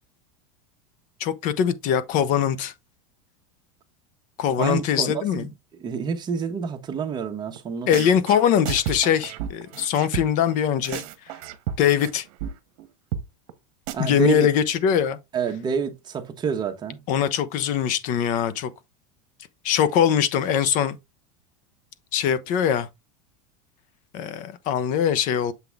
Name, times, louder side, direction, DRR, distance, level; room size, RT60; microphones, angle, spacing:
voice 1, 1.2-2.7 4.4-5.5 7.9-11.0 11.8-12.2 14.0-15.2 17.1-18.7 19.6-21.0 22.1-22.9 24.1-25.5, left 9 dB, 45° left, 0.8 m, -22 dB
voice 2, 4.6-5.5 5.8-7.9 13.9-14.5 15.3-17.0, right 6 dB, 25° right, 1.1 m, -28 dB
sound 1, 7.6-7.7 7.9-10.5 10.8-12.1 12.4-12.5 12.8-12.9 13.1-13.2 13.5-13.6 13.9-14.0, right 9 dB, 60° right, 1.1 m, -31 dB
7.3 x 3.9 x 3.4 m
supercardioid pair, 140°, 18 cm